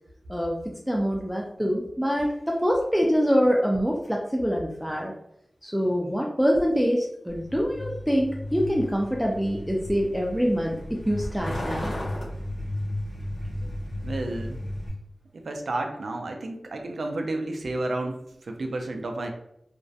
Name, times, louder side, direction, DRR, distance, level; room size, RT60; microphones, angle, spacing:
voice 1, 0.9-5.1 5.6-10.8 11.1-11.9, equal, 5° right, -1 dB, 0.3 m, -25 dB
Truck, 7.3-14.9, left 1 dB, 90° left, 1.1 m, -34 dB
voice 2, 14.0-14.6 15.3-19.3, right 2 dB, 80° right, 4 dB, 0.3 m, -31 dB
2.4 x 2.1 x 2.6 m, 0.78 s
wide cardioid pair, 90°, 0 cm